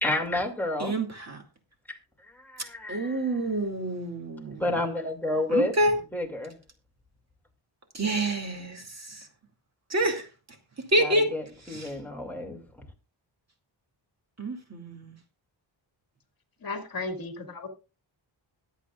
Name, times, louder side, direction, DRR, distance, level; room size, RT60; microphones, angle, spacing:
voice 1, 0.0-0.9 1.9-2.0 2.3-3.2 4.6-5.7 6.1-6.6 11.0-12.6, left 2 dB, 5° left, 2.4 m, -30 dB
voice 2, 0.8-1.4 2.9-4.8 5.5-5.9 7.9-9.3 9.9-10.3 10.9-11.3 11.7-11.9 14.4-15.2, right 1 dB, 35° right, 2.4 m, -28 dB
voice 3, 16.6-17.7, left 3 dB, 50° left, 2.3 m, -35 dB
22.5 x 8.1 x 2.4 m
wide cardioid pair, 175°, 46 cm